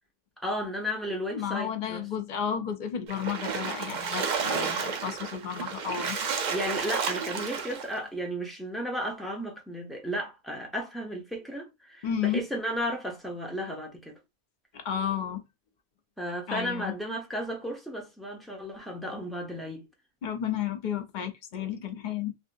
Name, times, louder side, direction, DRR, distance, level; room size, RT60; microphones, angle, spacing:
voice 1, 0.4-2.0 4.4-4.8 6.5-14.2 16.2-19.9, equal, ahead, 0.7 m, -34 dB
voice 2, 1.3-4.3 4.5-6.2 12.0-12.5 14.7-15.4 16.5-16.9 20.2-22.3, left 8 dB, 55° left, 0.5 m, -32 dB
Splash splatter, 3.1-7.9, right 5 dB, 50° right, 0.5 m, -31 dB
3.5 x 2.6 x 2.5 m
omnidirectional pair, 1.3 m